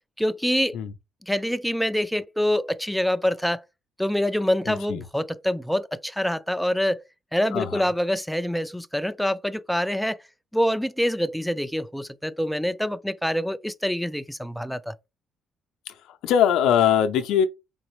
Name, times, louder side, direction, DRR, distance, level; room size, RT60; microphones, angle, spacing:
voice 1, 0.2-0.8 1.3-3.6 4.0-7.0 7.3-10.2 10.5-14.9, equal, ahead, 0.3 m, -25 dB
voice 2, 4.7-5.0 7.5-7.8 15.9-17.5, left 9 dB, 80° left, 0.5 m, -22 dB
3.9 x 3.9 x 3.1 m
cardioid pair, 85°, 0 cm